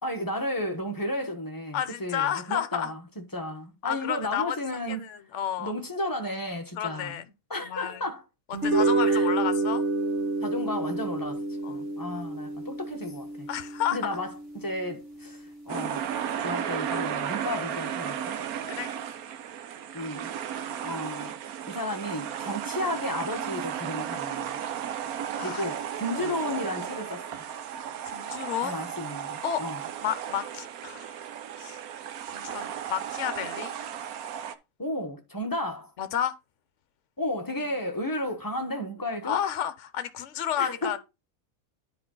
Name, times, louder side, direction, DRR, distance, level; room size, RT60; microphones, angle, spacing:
voice 1, 0.0-5.1 5.6-7.2 7.5-8.2 9.1-9.3 10.4-11.4 11.7-13.5 13.9-16.1 16.4-18.4 19.9-20.3 20.8-21.4 21.7-24.6 25.4-27.4 28.6-29.8 34.8-35.9 37.2-39.4 40.6-41.0, left 1 dB, 15° left, 1.1 m, -33 dB
voice 2, 1.7-2.9 3.8-4.6 4.9-5.7 6.8-7.3 7.6-8.0 8.6-9.8 11.6-11.8 13.5-14.0 18.7-18.9 25.3-25.7 26.2-26.3 28.1-28.7 29.4-29.6 30.0-31.2 31.6-31.8 32.3-33.7 36.0-36.3 39.2-41.0, left 10 dB, 60° left, 1.0 m, -31 dB
sound 1, 8.5-15.0, right 3 dB, 55° right, 2.1 m, -28 dB
sound 2, 15.7-34.5, right 9 dB, 85° right, 1.2 m, -34 dB
10.0 x 4.6 x 3.8 m
omnidirectional pair, 1.5 m